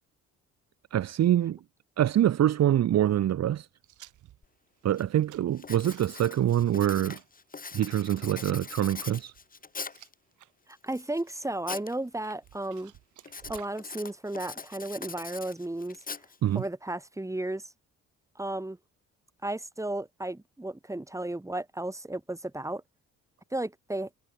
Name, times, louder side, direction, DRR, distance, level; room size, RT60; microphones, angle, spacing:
voice 1, 0.9-1.6 2.0-3.7 4.8-7.2 7.7-9.3 16.4-16.6, right 11 dB, 60° right, 1.1 m, -25 dB
sound 1, 3.8-10.5 10.9-11.4 12.0-13.8, right 13 dB, 85° right, 7.4 m, -56 dB
Writing, 4.4-4.5 5.0-5.2 5.6-10.1 10.7-11.9 12.2-12.7 13.2-16.7, left 4 dB, 30° left, 2.6 m, -42 dB
voice 2, 10.8-12.9 13.5-16.0 16.5-17.6 18.4-18.8 19.4-22.8 23.5-24.1, right 1 dB, 10° right, 5.4 m, -34 dB
cardioid pair, 90°, 30 cm